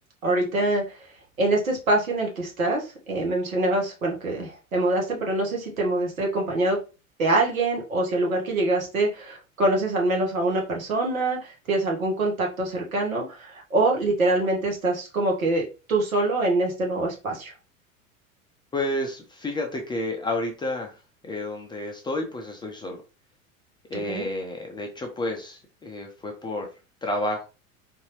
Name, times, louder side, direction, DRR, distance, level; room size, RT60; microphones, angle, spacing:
voice 1, 0.2-1.0 1.4-6.8 7.2-17.5 23.9-24.3, right 2 dB, 75° right, 0 dB, 1.2 m, -25 dB
voice 2, 18.7-21.0 21.2-23.0 23.9-26.7 27.0-27.4, left 1 dB, 10° left, 2 dB, 0.5 m, -30 dB
3.8 x 2.7 x 2.9 m, 0.32 s
figure-of-eight pair, 80°, 42 cm